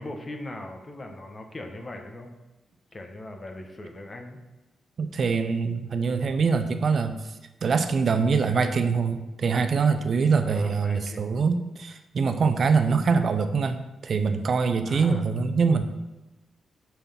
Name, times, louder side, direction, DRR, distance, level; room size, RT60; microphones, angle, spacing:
voice 1, 0.0-2.3 2.9-4.4 10.4-11.3 14.8-15.3, left 1 dB, 35° left, 4 dB, 1.0 m, -40 dB
voice 2, 5.0-7.2 7.6-15.8, right 5 dB, 60° right, 8 dB, 0.5 m, -24 dB
5.5 x 3.5 x 5.7 m, 1.0 s
cardioid pair, 65°, 0 cm